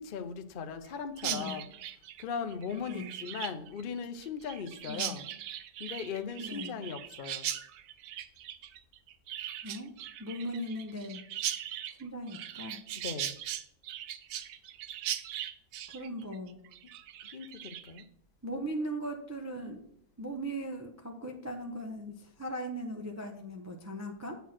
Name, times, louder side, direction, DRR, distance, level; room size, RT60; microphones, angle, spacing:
voice 1, 0.0-1.7 2.2-5.3 5.8-7.5 12.9-13.4 17.3-18.1, left 6 dB, 50° left, 7 dB, 0.6 m, -38 dB
voice 2, 1.2-1.6 2.8-3.1 4.9-5.2 6.4-6.8 9.6-9.9 10.2-11.2 12.0-12.8 15.9-16.6 18.4-19.8 20.2-24.4, right 1 dB, 15° right, 2 dB, 0.5 m, -38 dB
Chirp tweet, 1.2-18.0, right 11 dB, 80° right, 1.1 m, -39 dB
8.2 x 4.5 x 5.9 m, 0.71 s
omnidirectional pair, 1.7 m